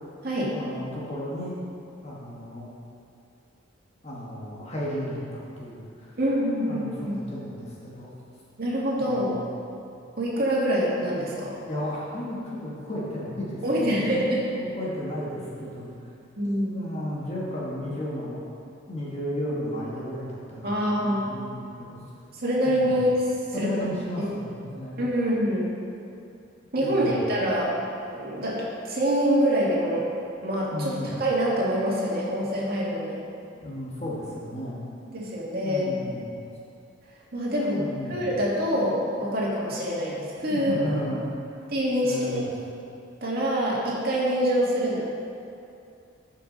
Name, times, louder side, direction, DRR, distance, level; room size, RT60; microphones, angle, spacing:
voice 1, 0.5-1.6 2.0-2.7 4.0-6.1 6.6-8.1 9.0-9.4 11.6-14.2 14.6-15.9 16.4-18.5 18.9-22.0 22.6-22.9 23.5-25.0 26.8-27.2 30.7-31.1 33.6-34.8 35.6-36.3 37.7-38.3 40.5-41.2 41.6-41.7 42.0-42.5, left 1 dB, 30° left, -6 dB, 1.4 m, -34 dB
voice 2, 6.2-7.2 8.6-9.4 10.2-11.6 13.6-14.4 16.4-16.9 20.6-21.2 22.3-23.7 24.2-24.3 25.0-25.7 26.7-27.8 28.2-30.1 30.4-33.2 35.1-36.0 37.3-40.8 41.7-42.5 43.2-45.0, equal, 50° right, -5 dB, 2.0 m, -25 dB
13.0 x 5.9 x 3.9 m, 2.5 s
head